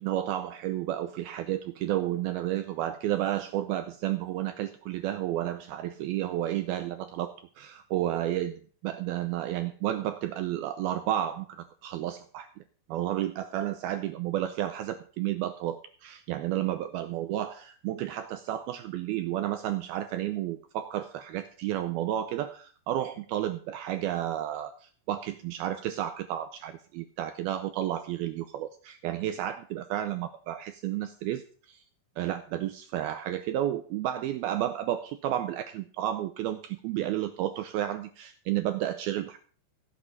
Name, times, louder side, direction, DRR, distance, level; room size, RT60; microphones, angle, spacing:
voice 1, 0.0-12.5 12.9-31.8 32.2-39.4, right 12 dB, 85° right, 9 dB, 2.2 m, -32 dB
16.5 x 8.3 x 4.0 m, 0.43 s
omnidirectional pair, 5.1 m